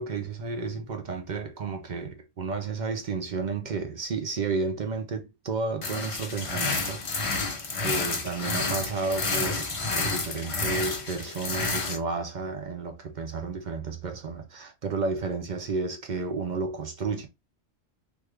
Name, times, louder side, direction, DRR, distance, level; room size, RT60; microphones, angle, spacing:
voice 1, 0.0-17.3, right 4 dB, 55° right, 0.5 m, -32 dB
sound 1, 5.8-12.0, left 3 dB, 40° left, 0.5 m, -30 dB
3.5 x 2.3 x 3.1 m
omnidirectional pair, 1.3 m